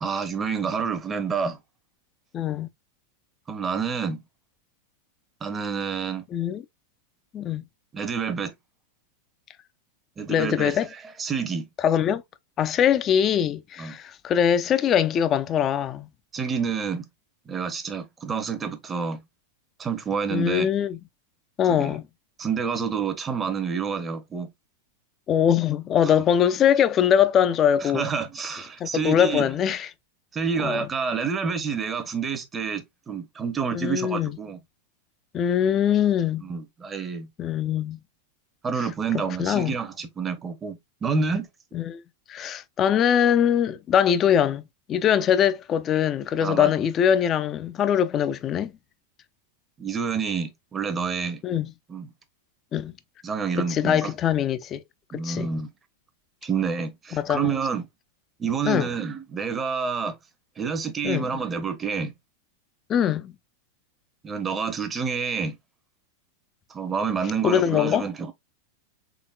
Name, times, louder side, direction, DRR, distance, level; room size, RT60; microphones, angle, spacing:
voice 1, 0.0-1.6 3.5-4.2 5.4-6.2 7.9-8.5 10.2-10.8 11.2-11.7 13.8-13.9 16.3-17.1 17.5-19.2 19.8-20.7 21.7-21.9 22.4-24.5 26.0-26.1 27.8-29.5 30.3-34.6 36.4-37.3 38.6-41.5 46.4-46.7 49.8-51.4 51.9-52.1 53.2-54.1 55.1-55.7 56.4-57.8 58.4-60.2 60.6-62.1 64.2-65.6 66.7-68.3, right 6 dB, 20° right, 0.8 m, -28 dB
voice 2, 2.3-2.7 6.3-6.6 7.3-7.6 10.3-10.9 11.8-12.2 12.6-16.1 20.3-21.0 21.6-22.0 25.3-28.0 28.8-29.9 30.6-30.9 33.7-34.3 35.3-36.5 37.4-38.0 39.4-39.7 41.7-42.0 42.3-44.6 44.9-48.7 51.4-51.7 52.7-52.9 53.6-54.8 55.1-55.5 57.1-57.5 58.7-58.9 61.0-61.3 62.9-63.3 67.4-68.1, left 9 dB, 30° left, 0.5 m, -22 dB
3.9 x 3.6 x 2.2 m
figure-of-eight pair, 95°, 0 cm